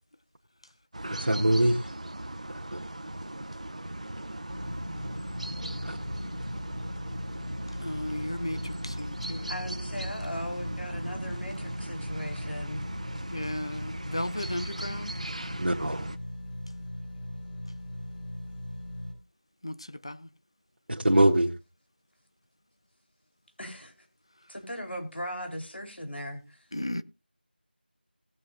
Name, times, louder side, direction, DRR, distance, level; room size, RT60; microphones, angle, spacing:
sound 1, 0.9-16.2, right 1 dB, 40° right, 0.7 m, -39 dB
voice 1, 1.1-1.9 2.7-2.8 5.8-6.0 15.6-16.1 20.9-21.5, right 1 dB, 65° right, 1.6 m, -23 dB
sound 2, 4.5-19.1, left 1 dB, 55° left, 5.2 m, -39 dB
voice 2, 7.8-9.5 13.3-15.1 19.6-20.3 26.7-27.0, left 1 dB, 30° left, 0.5 m, -35 dB
voice 3, 9.5-12.9 23.6-23.9 24.5-26.6, equal, 90° left, 4.0 m, -38 dB
19.0 x 7.7 x 2.6 m
figure-of-eight pair, 175°, 6 cm